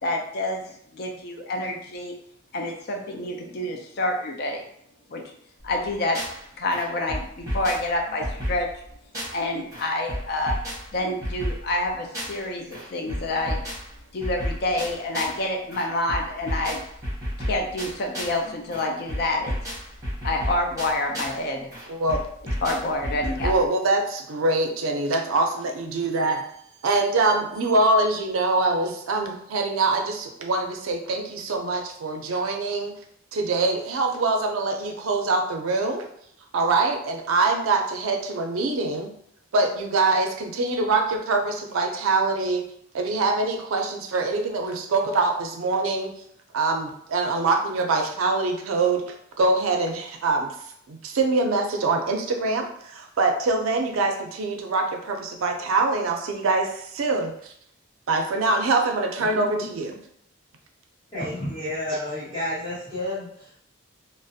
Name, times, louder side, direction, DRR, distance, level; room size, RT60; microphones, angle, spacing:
voice 1, 0.0-2.1 2.5-4.6 5.1-5.2 5.6-6.2 6.6-8.7 9.3-10.6 10.9-13.6 14.1-16.8 17.4-19.6 20.2-21.7 22.6-23.5, left 1 dB, 50° left, 2 dB, 0.3 m, -28 dB
sound 1, 5.6-6.4 6.7-9.5 9.7-12.5 12.7-15.4 15.7-18.4 18.7-21.4 21.7-23.7, equal, 15° right, 0.8 m, -32 dB
voice 2, 21.9-22.2 23.4-26.4 26.8-32.9 33.3-36.0 36.5-39.1 39.5-42.6 42.9-46.1 46.5-49.0 49.4-50.5 50.9-57.5 58.1-59.9, right 3 dB, 80° right, 3 dB, 0.4 m, -24 dB
voice 3, 59.3-59.7 61.1-63.6, left 1 dB, 20° left, -15 dB, 1.1 m, -31 dB
2.4 x 2.0 x 2.6 m, 0.69 s
head